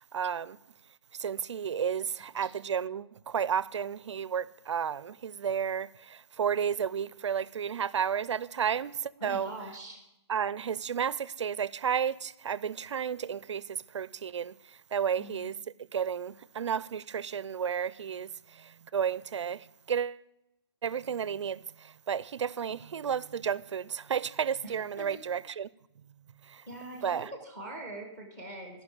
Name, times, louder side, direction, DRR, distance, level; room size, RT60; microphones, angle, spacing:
voice 1, 0.1-0.6 1.1-9.5 10.3-15.6 15.9-20.2 20.8-25.7 26.5-26.6 27.0-27.3, right 8 dB, 85° right, 0.5 m, -32 dB
voice 2, 9.2-10.0 15.2-15.5 24.6-25.2 26.7-28.8, right 1 dB, 15° left, 1.4 m, -43 dB
12.5 x 5.9 x 8.0 m
hypercardioid pair, 175°, 15 cm